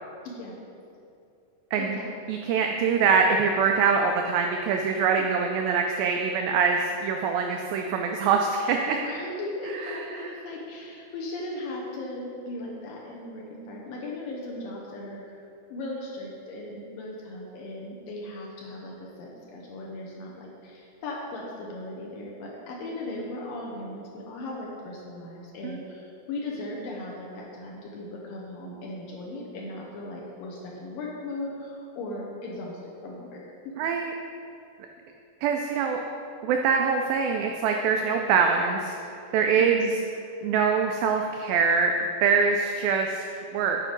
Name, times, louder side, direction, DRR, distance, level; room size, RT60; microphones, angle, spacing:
voice 1, 0.2-0.6 1.8-2.1 5.2-5.3 8.9-15.4 15.7-33.8 39.5-39.9, left 2 dB, 75° left, -2 dB, 2.3 m, -37 dB
voice 2, 2.3-9.0 9.8-10.3 25.6-25.8 33.8-34.1 35.4-36.0 36.4-38.9 39.3-39.9 40.4-43.8, right 5 dB, 90° right, 3 dB, 2.0 m, -24 dB
9.5 x 4.6 x 5.2 m, 2.6 s
omnidirectional pair, 4.7 m